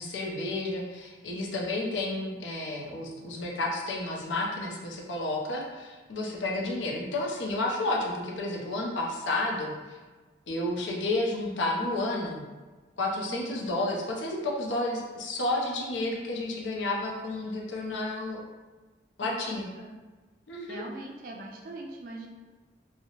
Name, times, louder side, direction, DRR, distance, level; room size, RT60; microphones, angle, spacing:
voice 1, 0.0-10.0 10.5-12.4 13.0-18.5 19.2-19.7 20.5-20.8, left 2 dB, 85° left, -1 dB, 0.5 m, -31 dB
voice 2, 13.3-13.7 19.2-19.9 20.7-22.3, right 1 dB, 50° right, 0 dB, 0.3 m, -41 dB
2.7 x 2.0 x 2.8 m, 1.3 s
head